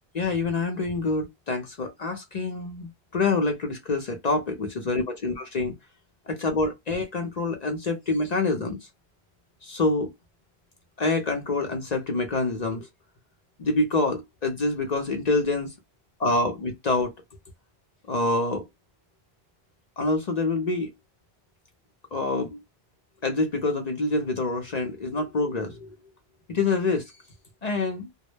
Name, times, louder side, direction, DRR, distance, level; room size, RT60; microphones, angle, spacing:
voice 1, 0.1-5.7 6.3-8.8 9.6-10.1 11.0-12.9 13.6-15.7 16.2-17.1 18.1-18.7 20.0-20.9 22.1-22.6 23.2-25.9 26.5-27.0 27.6-28.1, left 3 dB, 50° left, 0.6 m, -26 dB
2.2 x 2.0 x 3.0 m
omnidirectional pair, 1.1 m